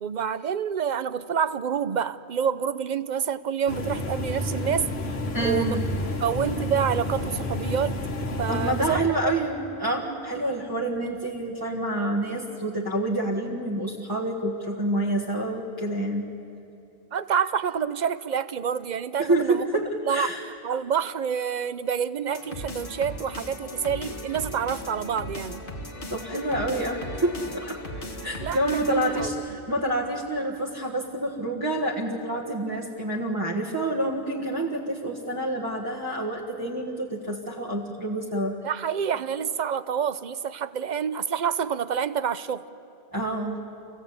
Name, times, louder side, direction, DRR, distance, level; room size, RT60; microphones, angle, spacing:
voice 1, 0.0-4.9 5.4-5.8 6.2-8.0 8.4-9.2 17.1-19.7 20.1-20.3 20.6-25.6 28.4-29.4 38.6-42.6, right 7 dB, 50° right, 14 dB, 0.7 m, -28 dB
sound 1, 3.7-9.0, left 1 dB, 70° left, 1.6 m, -30 dB
voice 2, 5.3-5.9 8.5-16.3 19.2-20.4 26.1-27.8 28.2-38.6 43.1-43.6, right 1 dB, 20° right, -3 dB, 1.6 m, -28 dB
sound 2, 22.3-29.3, left 1 dB, 55° left, 1.7 m, -37 dB
28.0 x 16.5 x 8.4 m, 2.8 s
omnidirectional pair, 1.1 m